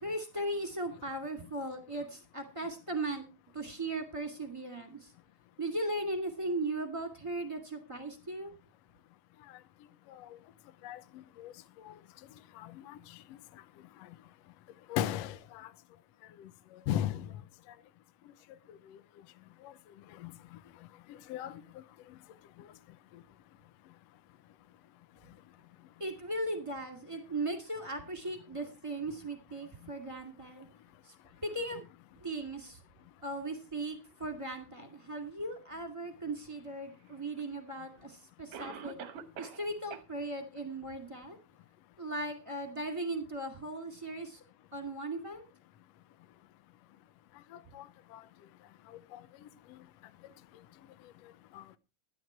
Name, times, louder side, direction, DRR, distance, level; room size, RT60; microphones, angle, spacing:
voice 1, 0.0-3.2 3.5-5.1 5.6-8.5 26.0-30.7 31.0-31.1 31.4-31.8 32.2-32.8 33.2-39.0 39.4-41.4 42.0-44.4 44.7-45.4, right 2 dB, 10° right, 1.7 m, -37 dB
voice 2, 12.6-13.0 14.9-15.4 16.9-17.3 20.2-20.3 21.3-21.5 47.8-47.9 51.6-51.7, left 11 dB, 75° left, 1.6 m, -33 dB
Cough, 37.4-37.5 38.5-39.7 39.9-40.0 40.6-40.7 41.2-41.3, right 7 dB, 65° right, 1.7 m, -43 dB
11.5 x 11.0 x 4.5 m
omnidirectional pair, 3.5 m